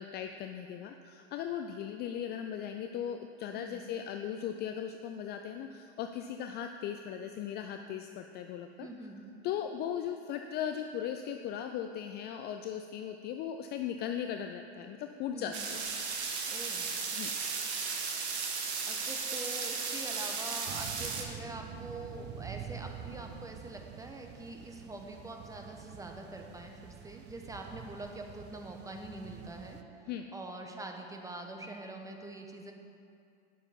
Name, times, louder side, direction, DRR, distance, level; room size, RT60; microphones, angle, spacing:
voice 1, 0.0-8.9 9.4-15.8 17.1-17.3 30.1-30.2, left 9 dB, 30° left, 6 dB, 0.4 m, -38 dB
voice 2, 3.5-3.9 8.8-9.2 15.3-15.7 16.5-16.9 18.9-32.7, right 2 dB, 10° right, 3 dB, 1.1 m, -44 dB
sound 1, 15.5-21.2, right 5 dB, 75° right, 1.4 m, -35 dB
sound 2, 20.7-29.8, right 9 dB, 30° right, 0.6 m, -47 dB
9.3 x 7.0 x 5.3 m, 2.5 s
hypercardioid pair, 95°, 34 cm